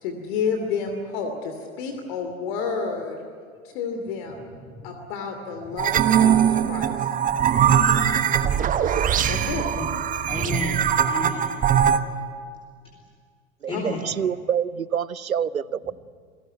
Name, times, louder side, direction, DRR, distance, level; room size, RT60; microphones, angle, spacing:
voice 1, 0.0-3.2 3.7-4.4 4.8-7.1 9.3-9.6 13.7-13.8, left 5 dB, 45° left, 5 dB, 2.9 m, -30 dB
voice 2, 4.6-4.9 7.2-8.1 9.7-9.9 10.3-11.6 13.7-14.0, left 2 dB, 15° left, -1 dB, 3.6 m, -34 dB
sound 1, 5.8-12.0, right 9 dB, 20° right, 1.0 m, -21 dB
voice 3, 13.6-15.9, right 8 dB, 80° right, 21 dB, 0.7 m, -27 dB
28.0 x 18.0 x 9.4 m, 2.1 s
figure-of-eight pair, 95°, 41 cm